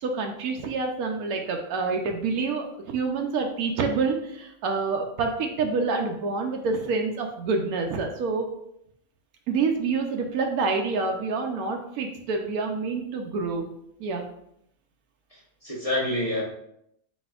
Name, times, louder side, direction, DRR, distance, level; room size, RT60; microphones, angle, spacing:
voice 1, 0.0-8.5 9.5-13.7 14.0-14.2, right 4 dB, 85° right, 2 dB, 1.1 m, -27 dB
voice 2, 15.3-16.4, left 1 dB, 30° left, -6 dB, 0.8 m, -28 dB
4.2 x 4.2 x 2.3 m, 0.75 s
omnidirectional pair, 1.5 m